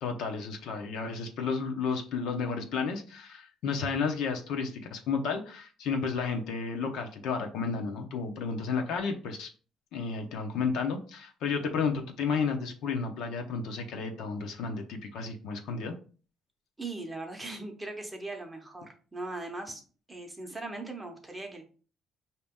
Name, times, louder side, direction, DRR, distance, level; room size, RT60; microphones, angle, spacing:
voice 1, 0.0-9.5 9.9-16.0, left 5 dB, 70° left, 4 dB, 0.8 m, -32 dB
voice 2, 16.8-19.8 20.1-21.6, right 2 dB, 10° right, 3 dB, 0.7 m, -39 dB
5.1 x 2.9 x 3.6 m, 0.39 s
cardioid pair, 160°, 0 cm